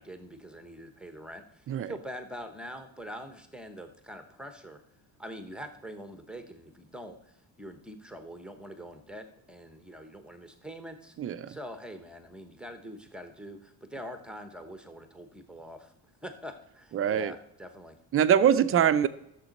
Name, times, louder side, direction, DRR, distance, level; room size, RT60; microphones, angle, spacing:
voice 1, 0.0-4.8 5.2-11.1 11.5-15.9 16.2-18.0 18.5-18.6, equal, ahead, 7 dB, 0.9 m, -44 dB
voice 2, 11.2-11.5 16.9-17.3 18.1-19.1, right 9 dB, 35° right, 13 dB, 0.5 m, -23 dB
12.0 x 7.3 x 5.3 m, 0.81 s
cardioid pair, 160°, 38 cm